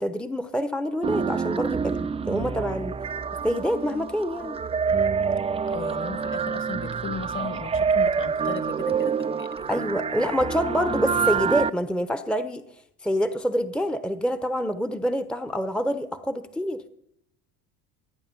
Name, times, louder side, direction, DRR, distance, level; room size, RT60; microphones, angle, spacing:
voice 1, 0.0-3.0 3.4-4.6 9.7-12.6 13.0-16.9, equal, ahead, 11 dB, 0.9 m, -26 dB
sound 1, 1.0-11.7, right 6 dB, 15° right, 0.4 m, -27 dB
voice 2, 5.7-9.8 10.2-10.3, left 5 dB, 30° left, 13 dB, 1.5 m, -37 dB
16.0 x 9.3 x 5.4 m, 0.74 s
hypercardioid pair, 65°, 39 cm